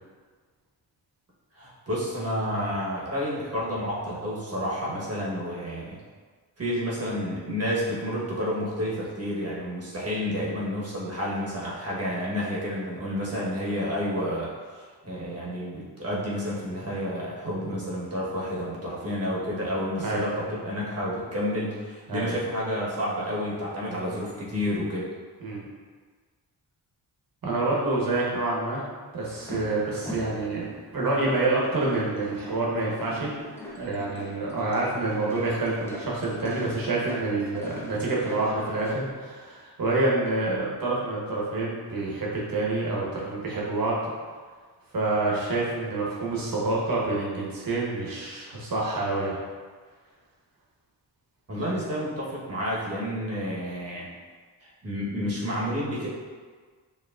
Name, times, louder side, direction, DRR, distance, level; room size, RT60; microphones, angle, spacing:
voice 1, 1.5-6.0 6.6-25.1 51.5-54.1 54.6-56.1, equal, 35° right, -6 dB, 1.2 m, -30 dB
voice 2, 27.4-28.8 29.1-30.7 30.9-33.3 33.8-44.0 44.9-49.4, right 2 dB, 55° right, -4 dB, 1.2 m, -27 dB
sound 1, 29.2-39.1, equal, 5° left, 0.6 m, -41 dB
4.9 x 2.9 x 2.4 m, 1.5 s
cardioid pair, 65°, 41 cm